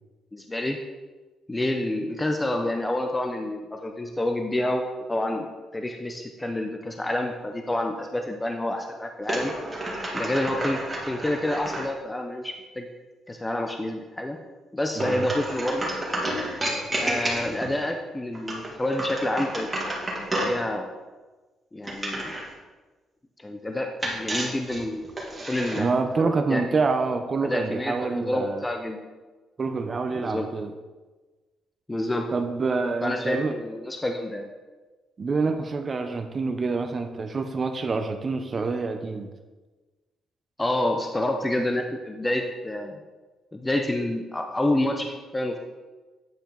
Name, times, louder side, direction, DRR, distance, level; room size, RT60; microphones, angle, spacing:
voice 1, 0.3-0.8 1.5-4.8 5.1-5.5 5.7-9.5 10.1-12.9 13.3-14.4 14.7-15.9 17.0-19.7 20.5-20.9 21.7-22.3 23.4-25.1 25.5-25.9 26.2-26.6 27.4-29.0 30.2-30.5 31.9-32.3 33.0-34.5 40.6-43.0 43.5-45.6, left 1 dB, 15° left, 4 dB, 0.6 m, -28 dB
sound 1, 9.2-11.9 14.9-17.7 18.3-20.6 21.8-22.5 24.0-25.8, right 1 dB, 20° right, 2.1 m, -30 dB
voice 2, 15.0-15.3 25.7-28.6 29.6-30.7 32.3-33.6 35.2-39.3, right 4 dB, 40° right, 7 dB, 0.5 m, -27 dB
9.2 x 4.5 x 3.8 m, 1.3 s
cardioid pair, 90°, 0 cm